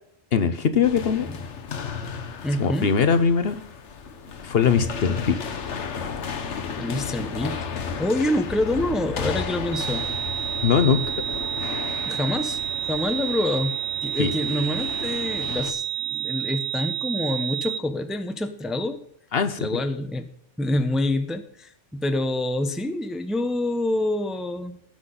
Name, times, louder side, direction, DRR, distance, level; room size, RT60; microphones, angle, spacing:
voice 1, 0.3-1.3 2.6-3.6 4.4-5.4 10.6-11.0 14.2-14.3 19.3-19.7, left 6 dB, 60° left, 10 dB, 1.0 m, -21 dB
sound 1, 0.8-15.7, left 6 dB, 80° left, 1.3 m, -34 dB
voice 2, 2.4-2.9 6.8-10.1 12.0-12.6 12.8-19.0 19.6-20.3 20.6-24.8, left 1 dB, ahead, 8 dB, 0.7 m, -27 dB
sound 2, 9.7-17.8, right 11 dB, 70° right, 1.1 m, -29 dB
17.5 x 6.0 x 3.8 m, 0.68 s
omnidirectional pair, 1.2 m